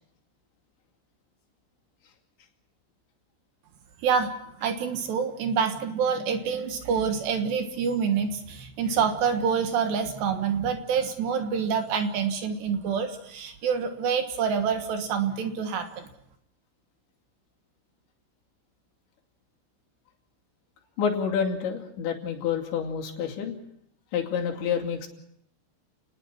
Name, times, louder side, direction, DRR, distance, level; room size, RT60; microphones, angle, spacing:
voice 1, 4.0-4.3 4.6-16.1, right 6 dB, 70° right, 6 dB, 3.4 m, -27 dB
voice 2, 21.0-23.6 24.1-25.1, left 7 dB, 70° left, 1 dB, 4.8 m, -28 dB
29.5 x 20.0 x 6.1 m, 0.74 s
omnidirectional pair, 5.6 m